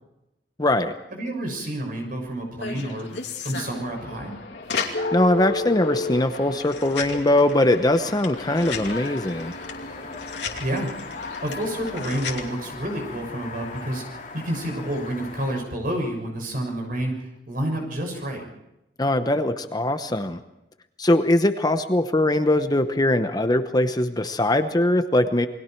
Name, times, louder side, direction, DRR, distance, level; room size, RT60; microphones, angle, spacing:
voice 1, 0.6-0.9 4.8-9.5 19.0-20.4 21.0-25.5, left 1 dB, 25° left, 8 dB, 0.9 m, -21 dB
voice 2, 1.1-4.3 10.6-10.9 11.4-18.5, right 1 dB, 55° right, 2 dB, 6.8 m, -29 dB
sound 1, 2.6-12.4, left 3 dB, 75° left, 2.8 m, -32 dB
sound 2, 8.3-15.6, left 4 dB, 45° left, 3.8 m, -40 dB
29.0 x 21.0 x 4.6 m, 0.89 s
head